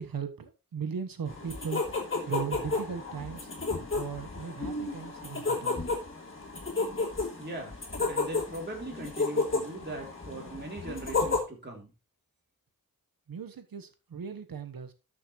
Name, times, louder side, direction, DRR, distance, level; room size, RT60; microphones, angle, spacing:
voice 1, 0.0-1.8 2.3-3.5 3.9-5.8 13.3-14.9, right 6 dB, 75° right, 1.3 m, -37 dB
sound 1, 1.3-11.4, left 3 dB, 35° left, 3.1 m, -32 dB
voice 2, 7.4-7.8 8.1-11.9, right 2 dB, 30° right, 3.3 m, -40 dB
13.0 x 6.1 x 3.1 m
wide cardioid pair, 75°, 35 cm